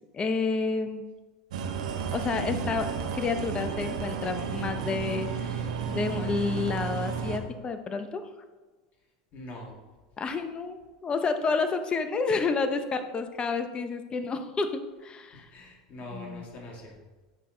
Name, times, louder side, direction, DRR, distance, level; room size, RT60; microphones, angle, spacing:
voice 1, 0.1-1.0 2.1-8.2 10.2-15.4 16.1-16.4, left 4 dB, 25° left, 8 dB, 0.9 m, -30 dB
sound 1, 1.5-7.4, right 6 dB, 80° right, 1.0 m, -32 dB
voice 2, 9.3-9.8 15.3-17.0, left 1 dB, 40° left, -1 dB, 2.0 m, -43 dB
9.0 x 5.9 x 3.9 m, 1.2 s
hypercardioid pair, 105°, 4 cm